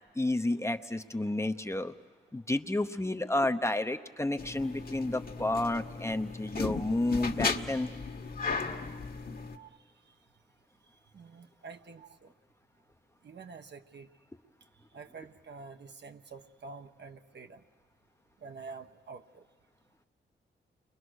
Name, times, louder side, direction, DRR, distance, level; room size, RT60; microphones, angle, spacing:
voice 1, 0.2-1.9 2.3-7.9, left 2 dB, 15° left, 8 dB, 0.9 m, -31 dB
sound 1, 4.4-9.6, left 4 dB, 50° left, 1.6 m, -36 dB
voice 2, 9.5-10.1 11.1-12.3 13.2-14.1 14.8-17.6 18.4-19.5, right 4 dB, 60° right, 6 dB, 1.2 m, -48 dB
29.5 x 23.0 x 6.4 m, 1.5 s
cardioid pair, 60°, 20 cm